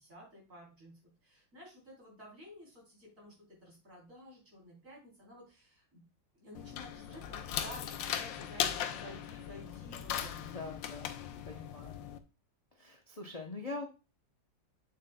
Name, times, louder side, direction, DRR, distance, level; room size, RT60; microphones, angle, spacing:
voice 1, 0.0-6.0 6.3-10.6, equal, 45° right, -3 dB, 3.9 m, -52 dB
sound 1, 6.5-12.2, left 9 dB, 90° left, 1.4 m, -38 dB
voice 2, 10.4-11.1 11.5-12.0 12.8-13.9, left 3 dB, 50° left, 3 dB, 0.4 m, -43 dB
7.5 x 7.4 x 2.2 m, 0.29 s
omnidirectional pair, 2.0 m